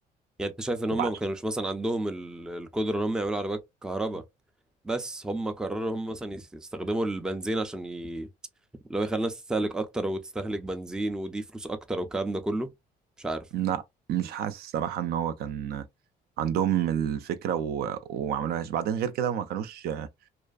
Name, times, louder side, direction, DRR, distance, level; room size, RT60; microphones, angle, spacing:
voice 1, 0.4-4.2 4.8-8.3 8.9-12.7 13.2-13.5, right 1 dB, 5° right, 0.4 m, -31 dB
voice 2, 14.1-15.9 16.4-20.1, right 9 dB, 65° right, 0.4 m, -29 dB
2.4 x 2.3 x 2.3 m
cardioid pair, 110°, 17 cm